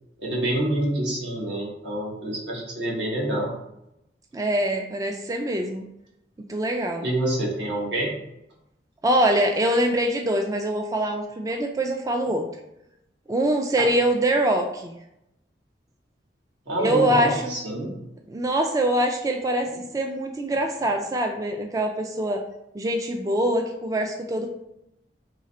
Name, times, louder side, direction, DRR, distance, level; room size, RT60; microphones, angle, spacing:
voice 1, 0.2-3.5 7.0-8.1 16.7-17.9, right 1 dB, 80° right, -4 dB, 1.6 m, -27 dB
voice 2, 4.3-5.9 6.5-7.0 9.0-12.5 13.3-15.0 16.8-17.5 18.3-22.4 22.7-24.5, right 1 dB, 20° right, 3 dB, 0.3 m, -24 dB
3.8 x 3.2 x 4.2 m, 0.84 s
head